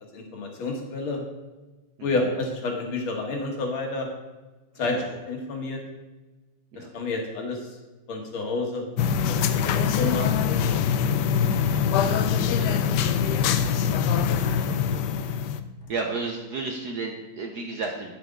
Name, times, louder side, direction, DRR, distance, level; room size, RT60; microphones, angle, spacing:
voice 1, 0.1-1.3 2.0-4.1 4.8-5.8 6.8-7.8 8.1-8.9 9.3-10.4 12.3-12.8 13.6-13.8, left 3 dB, 70° left, 1 dB, 2.1 m, -30 dB
sound 1, 9.0-15.6, left 7 dB, 85° left, 0.9 m, -23 dB
voice 2, 15.9-18.1, right 3 dB, 60° right, 2 dB, 1.1 m, -32 dB
8.9 x 7.6 x 3.7 m, 1.2 s
omnidirectional pair, 2.4 m